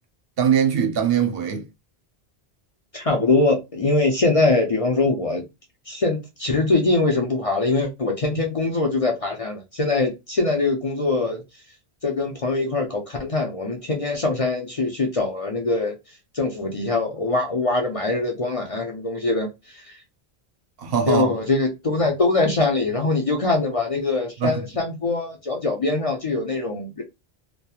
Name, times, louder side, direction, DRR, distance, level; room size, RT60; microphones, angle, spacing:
voice 1, 0.4-1.6 20.8-21.3 24.4-24.6, right 8 dB, 65° right, 0.8 m, -21 dB
voice 2, 2.9-5.4 5.9-11.4 12.0-16.0 16.3-20.0 21.1-27.0, left 3 dB, 40° left, 0.5 m, -23 dB
2.9 x 2.2 x 2.3 m
omnidirectional pair, 1.1 m